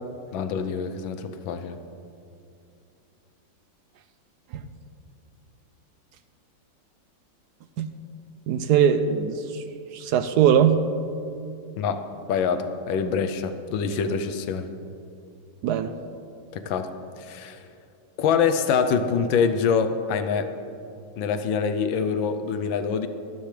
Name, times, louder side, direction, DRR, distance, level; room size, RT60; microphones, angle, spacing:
voice 1, 0.3-1.8 11.8-14.7 16.5-16.9 17.2-17.6 18.2-20.5 21.2-23.1, left 6 dB, 85° left, 9 dB, 1.5 m, -25 dB
voice 2, 8.5-9.6 9.9-10.8 15.6-15.9, right 8 dB, 70° right, 10 dB, 1.0 m, -20 dB
23.0 x 10.0 x 3.3 m, 2.5 s
omnidirectional pair, 2.1 m